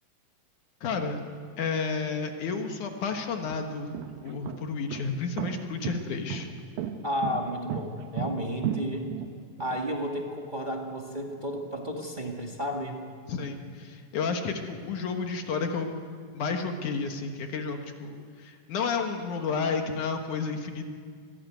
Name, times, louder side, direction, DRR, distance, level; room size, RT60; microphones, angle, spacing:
voice 1, 0.8-1.2 1.6-3.9 4.2-6.5 13.3-15.9 16.3-20.8, left 5 dB, 60° left, 4 dB, 2.6 m, -31 dB
sound 1, 2.5-2.6 3.3-9.8, right 8 dB, 75° right, 2.8 m, -34 dB
voice 2, 7.0-9.1 9.6-13.0, equal, 35° right, 1 dB, 0.7 m, -32 dB
25.0 x 18.0 x 9.3 m, 2.1 s
omnidirectional pair, 4.3 m